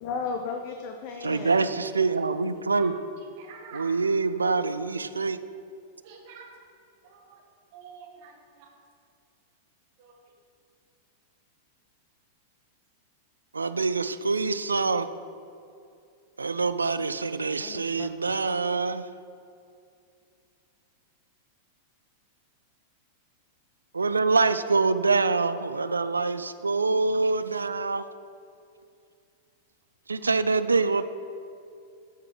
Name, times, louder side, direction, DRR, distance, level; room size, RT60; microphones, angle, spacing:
voice 1, 0.0-1.6 17.6-18.1, left 5 dB, 45° left, 4 dB, 0.6 m, -34 dB
voice 2, 1.2-2.9 3.7-5.4 13.5-15.1 16.4-19.1 23.9-28.0 30.1-31.0, right 4 dB, 80° right, 12 dB, 0.3 m, -25 dB
voice 3, 3.2-3.9 6.0-6.5 7.0-7.4 7.7-8.7 10.0-10.2 30.2-30.3, right 6 dB, 50° right, 1 dB, 1.3 m, -48 dB
8.2 x 5.8 x 4.8 m, 2.5 s
figure-of-eight pair, 95°, 0 cm